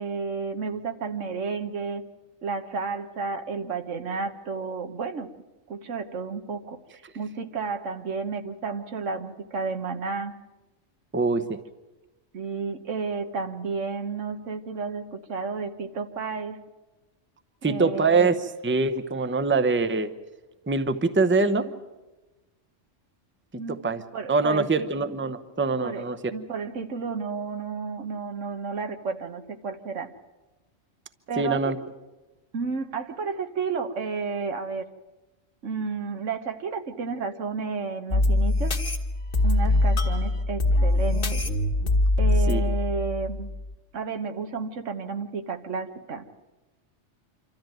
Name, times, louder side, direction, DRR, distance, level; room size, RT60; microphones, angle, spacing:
voice 1, 0.0-2.0 2.4-5.3 5.7-6.8 7.1-10.3 12.3-16.6 17.6-18.3 23.6-23.8 24.1-24.9 25.8-26.0 26.3-30.1 31.3-31.7 32.5-34.9 35.6-38.8 39.4-41.4 42.2-43.5 43.9-46.2, right 5 dB, 90° right, 7 dB, 1.6 m, -32 dB
voice 2, 11.1-11.6 17.6-20.1 20.7-21.7 23.8-24.0 24.3-26.2 31.4-31.8 42.5-42.6, right 3 dB, 10° right, 11 dB, 0.7 m, -24 dB
sound 1, 38.1-43.7, left 2 dB, 45° left, 1.6 m, -23 dB
26.5 x 13.5 x 9.2 m, 1.1 s
omnidirectional pair, 1.2 m